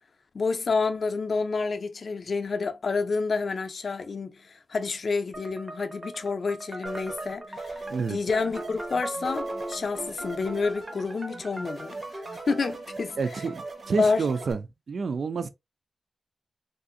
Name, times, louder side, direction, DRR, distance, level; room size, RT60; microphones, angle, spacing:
voice 1, 0.3-13.4 14.0-14.2, left 4 dB, 50° left, 0.4 m, -29 dB
sound 1, 5.3-12.5, right 1 dB, 15° right, 0.6 m, -40 dB
sound 2, 6.8-14.5, right 2 dB, 45° right, 0.8 m, -39 dB
voice 2, 13.2-14.6 14.9-15.5, right 5 dB, 65° right, 0.4 m, -29 dB
3.7 x 2.5 x 2.6 m
wide cardioid pair, 175°, 0 cm